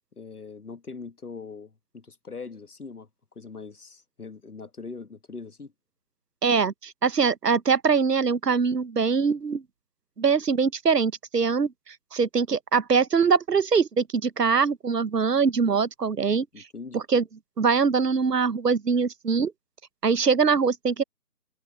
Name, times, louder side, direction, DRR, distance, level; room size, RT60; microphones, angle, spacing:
voice 1, 0.2-3.1 3.3-5.7 16.5-17.0, left 4 dB, 65° left, 1.7 m, -41 dB
voice 2, 6.4-9.6 10.2-16.5 16.9-17.2 17.6-19.5 20.0-21.0, right 5 dB, 75° right, 1.0 m, -23 dB
figure-of-eight pair, 175°, 48 cm